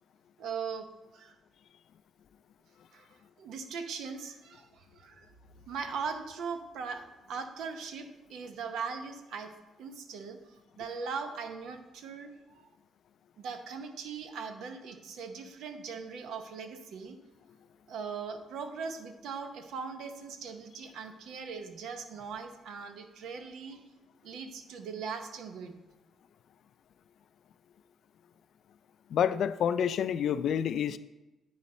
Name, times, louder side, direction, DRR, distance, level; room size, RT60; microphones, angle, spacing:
voice 1, 0.4-0.9 1.1-1.4 2.9-3.1 3.4-5.3 5.7-9.5 9.8-10.4 10.8-12.3 13.4-17.2 17.9-23.8 24.2-25.7, right 5 dB, 80° right, 7 dB, 0.8 m, -40 dB
voice 2, 29.1-31.0, left 8 dB, 70° left, 14 dB, 0.3 m, -28 dB
9.5 x 4.0 x 4.2 m, 1.0 s
cardioid pair, 90°, 0 cm